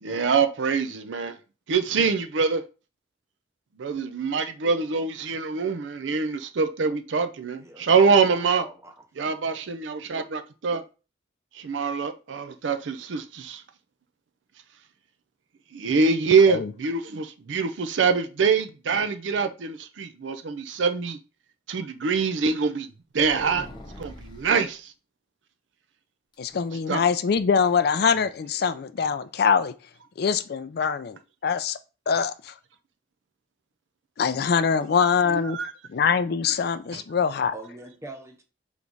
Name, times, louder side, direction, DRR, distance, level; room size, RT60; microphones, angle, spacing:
voice 1, 0.0-1.4 1.7-2.6 3.8-8.6 9.2-10.8 11.5-13.6 15.7-21.2 21.7-22.9 23.1-23.7 24.0-24.9 26.9-27.0 35.3-35.7 36.9-37.0, right 5 dB, 90° right, 0.5 m, -24 dB
voice 2, 7.6-8.9 37.5-38.4, right 2 dB, 15° right, 0.6 m, -43 dB
sound 1, 23.2-24.6 26.3-27.3 27.6-27.7 28.1-28.3, left 1 dB, 25° left, 0.8 m, -43 dB
voice 3, 26.4-29.7 30.2-31.8 32.1-32.5 34.2-35.6 35.9-37.5, left 6 dB, 60° left, 0.4 m, -23 dB
3.4 x 3.1 x 3.9 m
head